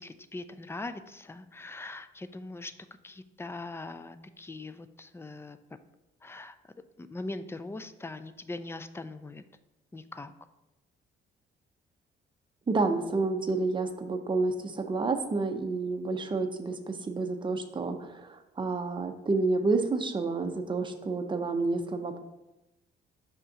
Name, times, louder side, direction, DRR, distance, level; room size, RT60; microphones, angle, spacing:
voice 1, 0.0-2.7 3.0-5.6 6.2-9.4 9.9-10.3, left 2 dB, 10° left, 11 dB, 0.4 m, -41 dB
voice 2, 12.7-22.2, right 3 dB, 25° right, 5 dB, 0.7 m, -29 dB
5.4 x 3.7 x 5.3 m, 0.95 s
cardioid pair, 90°, 20 cm